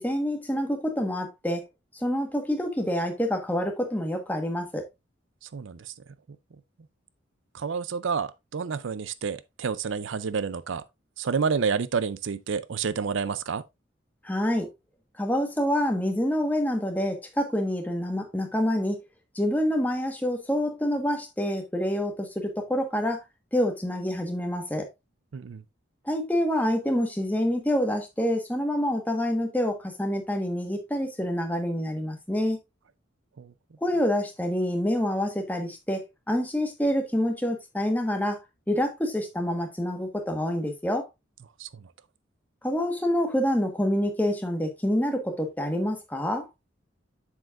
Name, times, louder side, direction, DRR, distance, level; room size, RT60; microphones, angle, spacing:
voice 1, 0.0-1.6 1.9-4.8 14.2-14.7 15.2-19.0 19.3-23.2 23.5-24.9 26.0-32.6 33.8-38.4 38.7-41.0 42.6-46.5, equal, 10° left, 1.3 m, -27 dB
voice 2, 5.4-5.9 7.5-10.8 11.2-13.6 25.3-25.6 33.4-33.5 41.6-41.8, right 5 dB, 80° right, 0.5 m, -29 dB
7.5 x 7.3 x 2.5 m
head